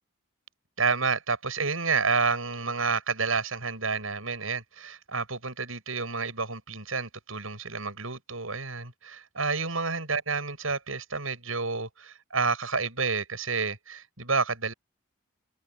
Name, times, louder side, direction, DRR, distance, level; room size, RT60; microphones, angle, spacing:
voice 1, 0.8-14.7, right 4 dB, 75° right, 7.7 m, -29 dB
open air
head